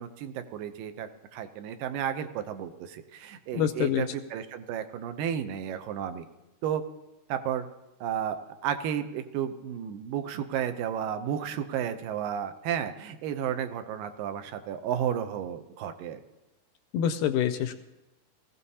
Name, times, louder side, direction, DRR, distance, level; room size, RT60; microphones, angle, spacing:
voice 1, 0.0-6.2 6.6-6.8 7.3-7.7 8.0-16.2, right 9 dB, 80° right, 9 dB, 2.4 m, -32 dB
voice 2, 3.5-4.1 16.9-17.7, left 9 dB, 80° left, 9 dB, 2.0 m, -26 dB
19.5 x 15.5 x 2.8 m, 0.98 s
omnidirectional pair, 4.0 m